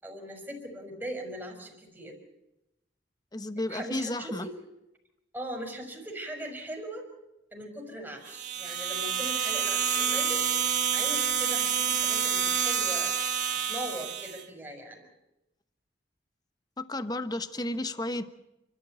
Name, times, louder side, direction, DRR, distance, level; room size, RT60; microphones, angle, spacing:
voice 1, 0.0-2.2 3.7-4.5 5.3-7.1 7.5-10.5 10.9-13.1 13.7-15.0, right 1 dB, 10° right, 2 dB, 5.4 m, -39 dB
voice 2, 3.3-4.5 16.8-18.2, left 1 dB, 20° left, 11 dB, 1.1 m, -32 dB
sound 1, 8.3-14.4, right 7 dB, 45° right, 1.9 m, -28 dB
29.5 x 13.0 x 9.2 m, 0.91 s
head